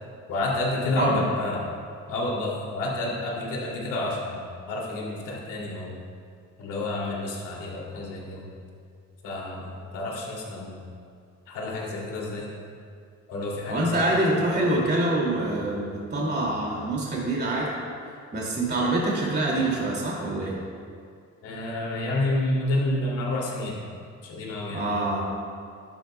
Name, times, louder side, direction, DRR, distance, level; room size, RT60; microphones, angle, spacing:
voice 1, 0.3-1.6 2.1-6.0 6.6-8.5 9.2-10.8 11.5-12.5 13.3-14.0 14.7-14.8 21.4-23.8 24.2-24.9, left 2 dB, 85° left, -3 dB, 2.7 m, -29 dB
voice 2, 13.7-17.7 18.3-20.6 24.7-25.3, right 1 dB, 35° right, -4 dB, 2.4 m, -25 dB
12.5 x 11.5 x 2.2 m, 2.3 s
cardioid pair, 90°, 30 cm